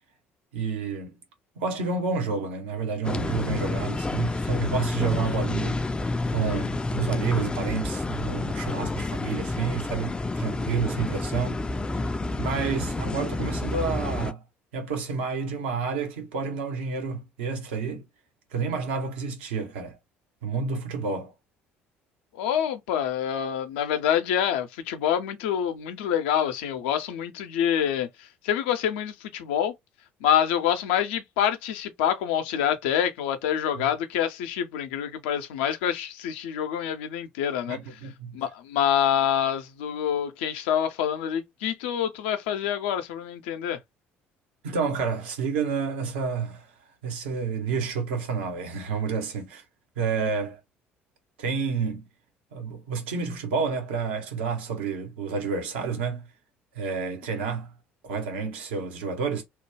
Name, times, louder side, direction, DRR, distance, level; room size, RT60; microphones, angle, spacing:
voice 1, 0.5-1.2 1.6-5.8 6.3-11.6 12.4-14.4 14.7-18.0 18.5-20.0 20.4-21.3 33.8-33.9 37.7-38.3 44.6-46.7 47.0-49.6 50.0-50.6 51.4-52.0 52.5-56.3 56.7-57.7 58.0-59.4, right 5 dB, 70° right, 0.9 m, -30 dB
sound 1, 3.0-14.3, left 2 dB, 15° left, 0.4 m, -29 dB
voice 2, 22.3-29.7 30.2-37.8 38.3-43.8, left 9 dB, 70° left, 0.6 m, -26 dB
3.1 x 2.2 x 3.2 m
figure-of-eight pair, 55°, 6 cm